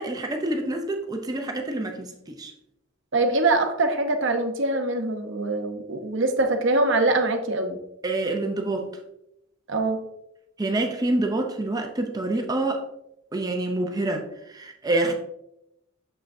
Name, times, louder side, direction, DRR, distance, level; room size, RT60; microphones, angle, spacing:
voice 1, 0.0-2.5 8.0-8.9 10.6-12.8 13.3-15.1, right 2 dB, 20° right, 0.5 m, -27 dB
voice 2, 3.1-7.8 9.7-10.0, right 2 dB, 60° right, 0.8 m, -23 dB
7.2 x 5.6 x 2.6 m
head